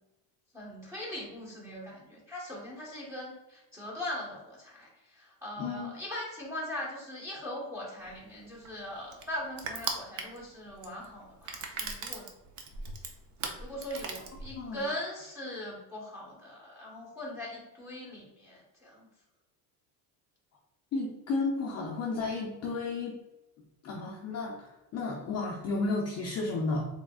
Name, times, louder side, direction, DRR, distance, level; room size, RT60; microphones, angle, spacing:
voice 1, 0.5-12.3 13.6-19.1, left 1 dB, 5° right, -4 dB, 1.2 m, -40 dB
voice 2, 5.6-5.9 14.6-14.8 20.9-23.1 23.8-27.0, left 3 dB, 35° left, -2 dB, 0.5 m, -33 dB
Crushing, 8.1-14.9, right 4 dB, 40° right, 0.5 m, -39 dB
3.5 x 3.5 x 2.3 m, 0.99 s
cardioid pair, 150°, 49 cm